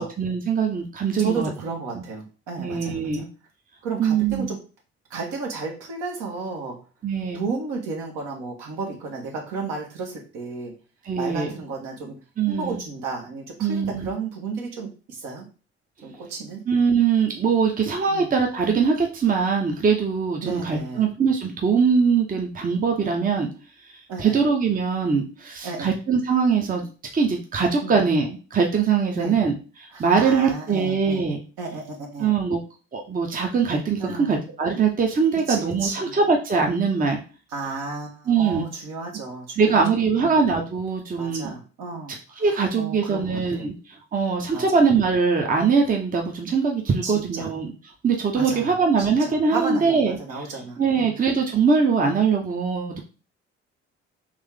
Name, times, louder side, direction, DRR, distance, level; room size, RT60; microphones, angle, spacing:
voice 1, 0.0-1.5 1.9-2.0 2.6-3.2 4.0-4.5 7.0-7.4 11.1-11.5 12.4-12.8 13.6-14.1 16.7-23.5 24.2-29.5 29.8-31.4 32.2-32.6 32.9-37.2 38.3-38.6 39.6-41.5 42.4-43.7 44.1-47.7 48.0-50.2 50.8-53.0, right 5 dB, 25° right, 2 dB, 0.9 m, -22 dB
voice 2, 1.2-3.2 3.8-4.6 5.1-6.8 7.3-10.7 11.2-12.1 12.5-15.4 16.0-16.6 18.1-18.3 20.4-21.1 24.1-24.4 25.6-25.9 27.8-28.0 29.2-29.4 29.9-31.2 31.6-32.3 34.0-34.4 35.5-36.1 37.5-39.8 40.2-40.4 41.2-42.2 42.5-43.7 44.5-44.8 47.0-47.5 48.3-48.7 49.0-51.2, right 4 dB, 60° right, -1 dB, 1.5 m, -33 dB
3.3 x 3.1 x 3.7 m, 0.35 s
figure-of-eight pair, 45°, 34 cm